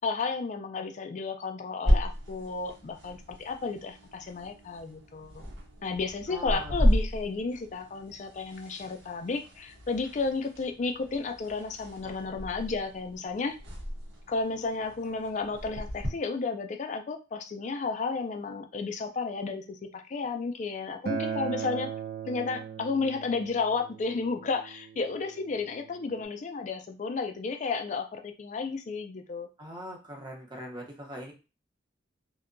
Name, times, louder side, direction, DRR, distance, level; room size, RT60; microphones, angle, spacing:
voice 1, 0.0-5.4 5.8-13.6 14.3-21.9 22.3-29.5, left 4 dB, 40° left, 6 dB, 0.3 m, -32 dB
sound 1, 1.8-16.1, equal, 80° right, 0.9 m, -33 dB
voice 2, 6.3-6.9 29.6-31.3, equal, 25° right, -1 dB, 0.7 m, -41 dB
Acoustic guitar, 21.1-26.3, right 6 dB, 55° right, 0.4 m, -38 dB
2.7 x 2.1 x 2.5 m, 0.31 s
head